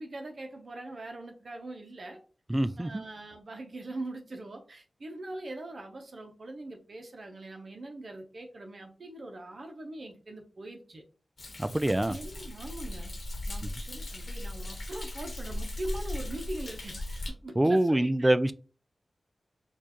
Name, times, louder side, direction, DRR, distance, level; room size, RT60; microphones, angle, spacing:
voice 1, 0.0-2.2 2.8-11.0 11.9-13.1 13.5-18.3, right 2 dB, 60° right, 0.8 m, -42 dB
voice 2, 2.5-3.0 11.6-12.1 17.6-18.5, right 1 dB, 20° right, 0.3 m, -25 dB
Thunder, 11.4-17.3, left 1 dB, 60° left, 1.0 m, -38 dB
4.4 x 2.4 x 2.9 m
cardioid pair, 50°, 0 cm